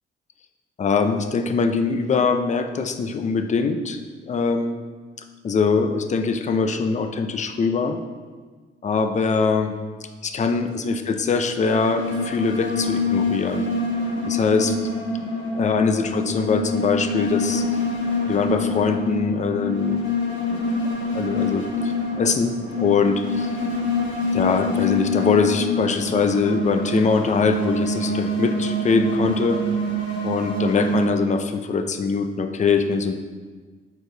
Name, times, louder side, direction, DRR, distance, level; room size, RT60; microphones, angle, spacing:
voice 1, 0.8-4.0 4.3-4.8 5.4-8.0 8.8-9.7 10.2-13.7 14.3-14.8 15.6-17.7 18.3-20.1 20.5-20.7 21.1-23.5 24.3-29.6 30.2-33.1, left 5 dB, 35° left, 7 dB, 0.6 m, -22 dB
sound 1, 11.6-31.1, left 1 dB, 70° left, 1.7 m, -26 dB
8.0 x 4.7 x 3.9 m, 1.4 s
cardioid pair, 90°, 20 cm